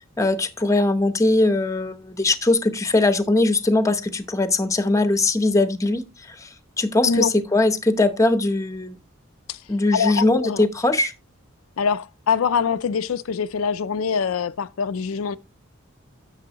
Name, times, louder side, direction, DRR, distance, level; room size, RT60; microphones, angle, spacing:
voice 1, 0.2-6.0 6.4-6.5 6.8-9.0 9.7-11.1, left 2 dB, 15° left, 0.8 m, -20 dB
voice 2, 9.9-10.6 11.8-15.4, left 6 dB, 80° left, 0.5 m, -24 dB
10.5 x 7.0 x 2.9 m
head